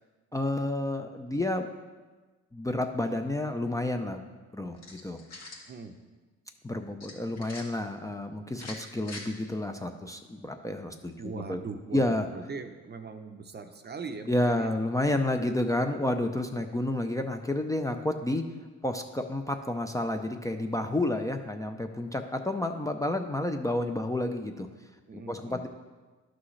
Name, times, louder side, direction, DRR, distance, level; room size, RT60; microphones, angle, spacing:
voice 1, 0.3-1.7 2.5-5.2 6.6-11.6 11.9-12.3 14.3-18.5 18.8-24.7 25.1-25.7, left 1 dB, 10° left, 5 dB, 0.5 m, -30 dB
sound 1, 4.7-5.7 7.0-7.6 8.5-9.2, left 2 dB, 60° left, 1.8 m, -44 dB
voice 2, 11.2-14.7 25.1-25.7, right 4 dB, 35° right, 7 dB, 0.7 m, -40 dB
11.5 x 6.1 x 3.2 m, 1.3 s
cardioid pair, 90°, 30 cm